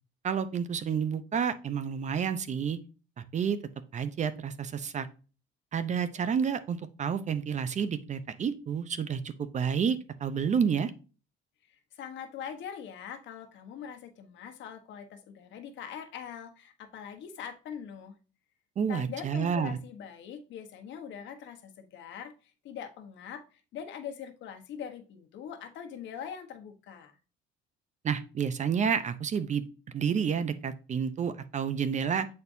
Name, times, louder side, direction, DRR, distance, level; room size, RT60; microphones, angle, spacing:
voice 1, 0.2-2.8 3.2-3.6 3.9-5.1 5.7-10.9 18.8-19.8 28.0-32.3, right 7 dB, 35° right, 13 dB, 0.6 m, -30 dB
voice 2, 11.7-18.1 18.9-27.2, left 8 dB, 65° left, 5 dB, 1.2 m, -42 dB
8.5 x 4.3 x 2.7 m, 0.34 s
cardioid pair, 115°, 21 cm